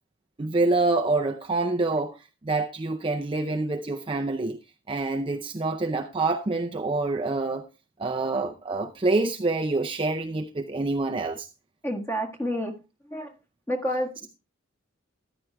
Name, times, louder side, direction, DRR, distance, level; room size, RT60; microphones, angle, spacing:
voice 1, 0.4-2.2 2.4-4.6 4.9-7.7 8.0-11.5, right 3 dB, 25° right, 0.5 m, -26 dB
voice 2, 11.8-12.7 13.1-13.3 13.7-14.3, equal, 10° left, 1.6 m, -29 dB
13.5 x 11.0 x 2.2 m
head